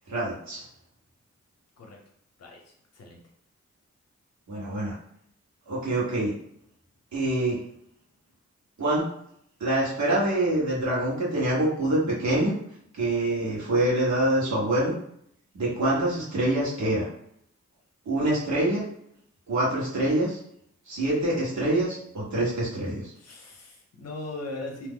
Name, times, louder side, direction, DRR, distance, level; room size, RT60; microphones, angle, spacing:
voice 1, 0.1-0.6 4.5-4.9 5.7-6.3 7.1-7.6 8.8-9.0 9.6-12.5 12.9-14.9 15.5-17.1 18.0-18.8 19.5-20.4 20.9-23.1, right 1 dB, 70° right, -6 dB, 1.3 m, -25 dB
voice 2, 23.2-24.9, left 2 dB, 55° left, 0 dB, 0.7 m, -38 dB
2.8 x 2.0 x 3.7 m, 0.70 s
wide cardioid pair, 165°, 30 cm